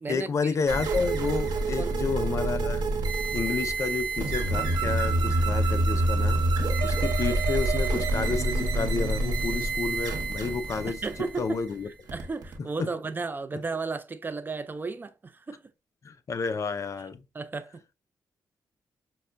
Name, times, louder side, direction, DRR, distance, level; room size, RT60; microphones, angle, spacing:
voice 1, 0.1-2.9 3.3-6.4 6.8-11.9 12.8-12.9 16.0-17.2, left 5 dB, 45° left, 0.4 m, -30 dB
sound 1, 0.7-12.6, right 2 dB, 80° right, 0.9 m, -27 dB
voice 2, 10.9-11.6 12.1-15.6 17.3-17.9, right 4 dB, 25° right, 0.4 m, -34 dB
5.4 x 2.2 x 2.4 m
cardioid pair, 95°, 7 cm